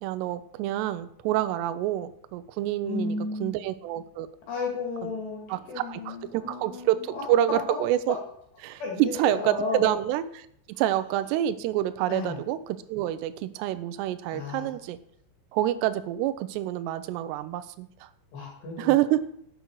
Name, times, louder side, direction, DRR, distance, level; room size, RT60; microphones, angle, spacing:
voice 1, 0.0-3.2 3.4-4.3 5.0-5.1 5.5-8.2 8.6-15.0 15.5-18.1 18.8-19.2, right 13 dB, 90° right, 11 dB, 2.4 m, -27 dB
voice 2, 2.8-3.6 4.5-7.2 8.8-9.9 12.1-12.4 14.3-14.7 18.3-18.9, left 3 dB, 60° left, -2 dB, 4.2 m, -33 dB
12.0 x 8.1 x 4.7 m, 0.68 s
omnidirectional pair, 5.7 m